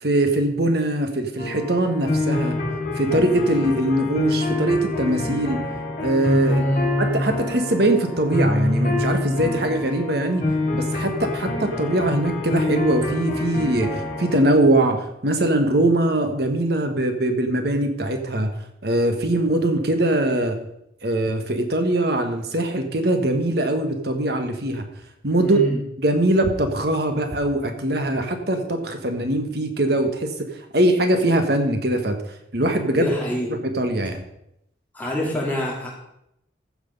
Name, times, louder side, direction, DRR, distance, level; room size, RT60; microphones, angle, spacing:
voice 1, 0.0-2.6 2.9-5.6 6.0-6.7 7.0-10.4 10.7-18.5 18.8-20.6 21.0-24.8 25.2-25.6 26.0-32.2 32.5-33.1 33.5-34.2, right 1 dB, 60° right, 6 dB, 1.4 m, -22 dB
sound 1, 1.4-14.4, left 2 dB, 40° left, 3.2 m, -26 dB
voice 2, 6.6-6.9 25.4-25.8 32.9-33.5 34.9-35.9, left 1 dB, 10° left, -4 dB, 3.0 m, -26 dB
14.5 x 6.2 x 5.4 m, 0.80 s
head